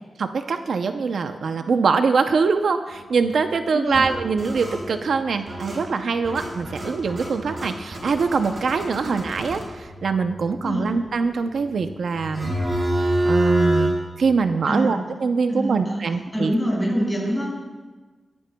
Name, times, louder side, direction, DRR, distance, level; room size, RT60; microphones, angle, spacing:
voice 1, 0.2-12.5 13.2-16.5, right 5 dB, 75° right, 7 dB, 0.6 m, -23 dB
sound 1, 2.9-3.5 3.9-13.9, right 1 dB, 35° right, 4.2 m, -28 dB
voice 2, 3.7-4.0 10.6-10.9 14.7-14.9 15.5-16.1 16.3-17.5, equal, 5° left, -4 dB, 5.3 m, -25 dB
21.0 x 15.5 x 2.2 m, 1.3 s
wide cardioid pair, 150°, 0 cm